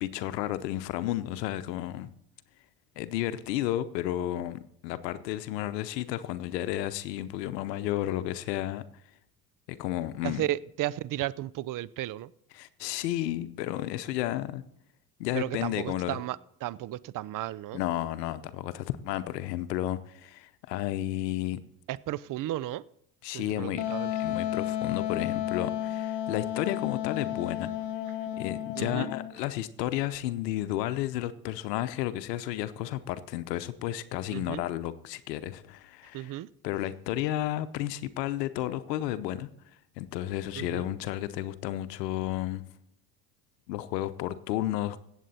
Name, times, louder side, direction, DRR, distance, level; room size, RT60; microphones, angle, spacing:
voice 1, 0.0-2.1 3.0-8.8 9.7-10.4 12.5-14.6 15.2-16.2 17.7-21.6 23.2-23.8 24.2-27.7 28.3-36.3 36.6-39.5 40.0-42.7 43.7-45.0, left 13 dB, 75° left, 13 dB, 0.9 m, -32 dB
voice 2, 10.2-12.3 15.3-17.8 21.9-22.8 23.3-24.4 28.8-29.1 34.3-34.6 36.1-36.5 40.6-40.9, right 14 dB, 40° right, 20 dB, 0.6 m, -34 dB
Wind instrument woodwind instrument, 23.8-29.3, left 11 dB, 60° left, 1.6 m, -32 dB
16.5 x 7.9 x 4.2 m, 0.74 s
hypercardioid pair, 70°, 49 cm